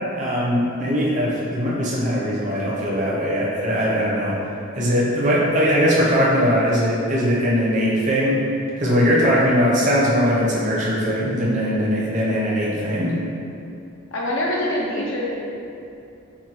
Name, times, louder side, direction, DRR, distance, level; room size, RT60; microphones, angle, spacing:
voice 1, 0.1-4.5 4.8-8.4 8.8-13.2, equal, 35° right, -6 dB, 0.7 m, -20 dB
voice 2, 14.1-15.3, left 1 dB, 70° left, -4 dB, 0.6 m, -24 dB
4.7 x 2.2 x 2.9 m, 2.7 s
head